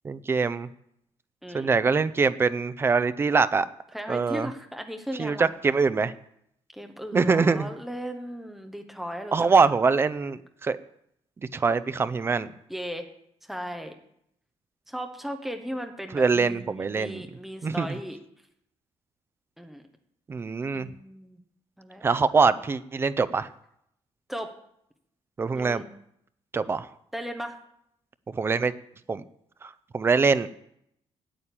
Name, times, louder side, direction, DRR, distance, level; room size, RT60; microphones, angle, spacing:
voice 1, 0.0-0.7 1.5-3.7 4.1-4.5 5.2-6.1 7.1-7.7 9.3-10.8 11.5-12.5 16.1-17.2 17.6-17.9 20.3-20.9 22.0-23.5 25.4-25.8 26.5-26.9 28.3-28.7 29.1-29.2 29.6-30.5, right 4 dB, 20° right, 14 dB, 0.4 m, -23 dB
voice 2, 3.9-5.5 6.7-9.7 12.7-13.1 13.4-13.9 14.9-18.2 19.6-19.8 20.7-21.4 21.8-22.0 24.3-24.5 25.5-25.9 27.1-27.6, equal, ahead, 5 dB, 1.1 m, -36 dB
8.9 x 8.8 x 8.4 m, 0.74 s
cardioid pair, 180°, 11 cm